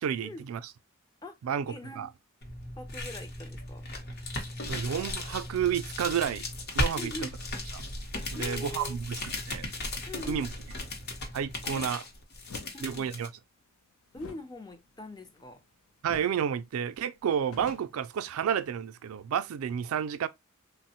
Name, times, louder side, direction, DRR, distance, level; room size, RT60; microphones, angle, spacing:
voice 1, 0.0-0.6 1.4-2.1 4.7-6.4 6.8-7.1 8.3-9.7 10.3-10.5 11.3-12.0 12.8-13.3 16.0-20.3, right 8 dB, 80° right, 0.3 m, -31 dB
voice 2, 1.7-2.1 2.8-3.8 6.9-7.4 8.4-9.0 10.1-10.5 11.6-11.8 12.7-13.1 14.1-15.6, left 1 dB, 20° left, 0.4 m, -42 dB
sound 1, 2.4-13.3, left 1 dB, 50° left, 0.7 m, -36 dB
Blanket Throwing, 12.5-12.7 14.1-15.7 16.1-16.4 16.7-16.8 17.2-18.7, left 3 dB, 80° left, 0.5 m, -48 dB
3.3 x 2.0 x 2.8 m
head